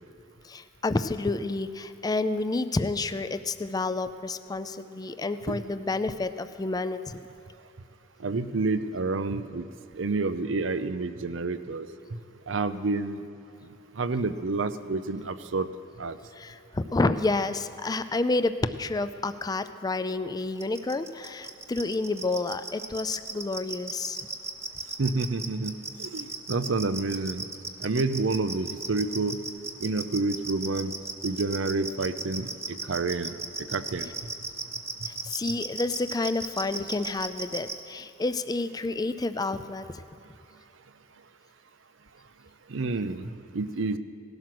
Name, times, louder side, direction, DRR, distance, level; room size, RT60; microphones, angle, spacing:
voice 1, 0.4-7.3 16.4-24.2 35.1-40.0, left 2 dB, 20° left, 11 dB, 0.4 m, -29 dB
voice 2, 8.2-9.6 9.9-11.9 12.5-13.2 14.0-15.7 16.0-16.2 25.0-27.5 27.8-29.4 29.8-30.9 31.2-33.3 33.7-34.1 42.7-44.0, right 3 dB, 85° right, 12 dB, 0.7 m, -29 dB
sound 1, 20.6-37.7, right 3 dB, 15° right, 0.9 m, -35 dB
18.0 x 12.0 x 6.0 m, 2.6 s
head